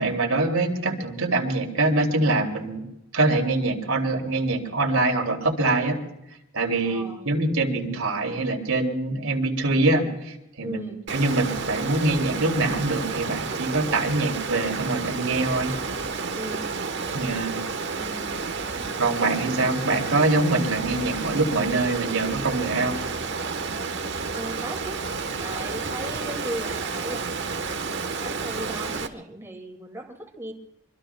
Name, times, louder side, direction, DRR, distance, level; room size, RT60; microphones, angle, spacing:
voice 1, 0.0-2.8 3.1-6.0 6.5-15.7 17.1-17.6 19.0-23.0, right 2 dB, 75° right, 2 dB, 2.8 m, -24 dB
voice 2, 6.8-7.3 10.6-11.0 16.3-16.7 18.0-18.3 18.6-19.0 24.3-30.5, right 1 dB, 10° right, 1 dB, 2.3 m, -37 dB
Water, 11.1-29.1, right 4 dB, 55° right, 1.2 m, -31 dB
24.5 x 24.5 x 2.3 m, 0.87 s
head